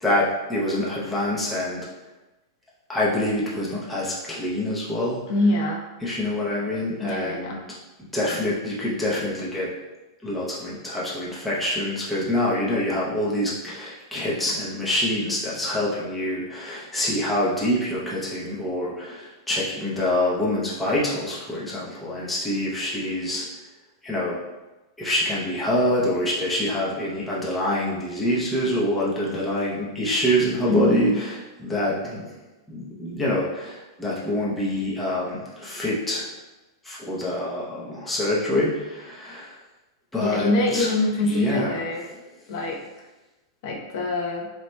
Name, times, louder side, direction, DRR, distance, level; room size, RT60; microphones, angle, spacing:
voice 1, 0.0-1.8 2.9-5.2 6.0-7.6 8.1-9.7 10.2-23.5 24.0-24.4 25.0-32.3 32.7-36.3 36.8-39.5 40.1-40.9 41.2-41.8, left 1 dB, 5° left, -7 dB, 0.7 m, -26 dB
voice 2, 5.3-5.8 7.0-7.6 30.7-31.2 40.2-42.0 42.5-42.8 43.6-44.5, left 2 dB, 50° left, -1 dB, 0.8 m, -24 dB
7.6 x 2.8 x 2.2 m, 1.1 s
supercardioid pair, 160°, 2 cm